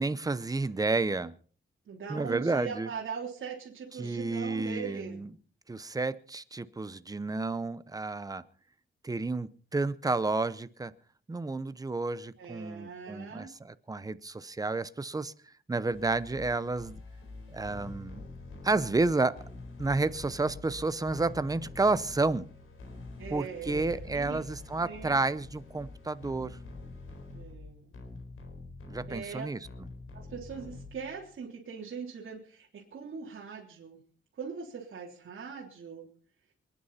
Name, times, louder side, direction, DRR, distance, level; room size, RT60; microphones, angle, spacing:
voice 1, 0.0-1.3 2.1-2.9 4.0-5.3 5.7-8.4 9.0-10.9 11.3-15.3 15.7-17.0 17.5-18.2 18.6-19.4 19.8-22.5 23.3-26.6 28.9-29.6, right 3 dB, 15° right, 0.7 m, -31 dB
voice 2, 1.9-5.3 12.4-13.5 23.2-24.4 24.8-25.2 27.3-28.0 29.1-29.5 30.1-34.0 34.3-36.1, right 6 dB, 65° right, 3.6 m, -41 dB
sound 1, 15.9-31.3, left 3 dB, 80° left, 4.7 m, -46 dB
27.5 x 9.8 x 4.2 m
wide cardioid pair, 160°, 21 cm